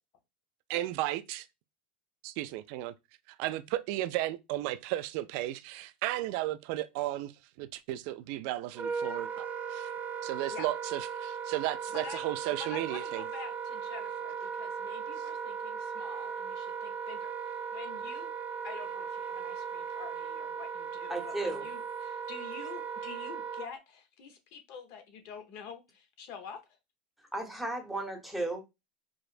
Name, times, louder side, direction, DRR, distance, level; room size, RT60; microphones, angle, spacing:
voice 1, 0.7-1.5 2.2-2.9 3.4-7.3 7.6-9.9 10.2-13.2, right 15 dB, 60° right, 0.3 m, -34 dB
Wind instrument woodwind instrument, 8.7-23.7, right 6 dB, 30° right, 0.7 m, -37 dB
voice 2, 11.9-12.3 12.6-18.3 18.6-26.6, left 7 dB, 55° left, 0.9 m, -47 dB
voice 3, 21.1-21.7 27.3-28.6, right 2 dB, ahead, 0.9 m, -34 dB
4.8 x 2.0 x 2.4 m
hypercardioid pair, 100°, 5 cm